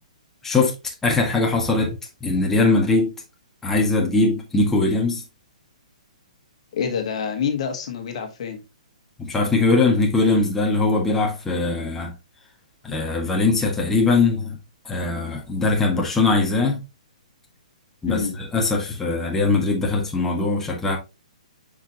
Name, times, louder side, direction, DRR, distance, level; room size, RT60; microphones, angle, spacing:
voice 1, 1.0-1.9 2.2-3.1 3.6-5.2 9.2-12.1 12.8-14.6 14.8-16.8 18.0-18.2 18.5-21.0, left 3 dB, 10° left, 1.6 m, -21 dB
voice 2, 6.7-8.6 18.1-18.3, left 7 dB, 55° left, 1.5 m, -26 dB
6.5 x 5.0 x 2.9 m
hypercardioid pair, 130°, 4 cm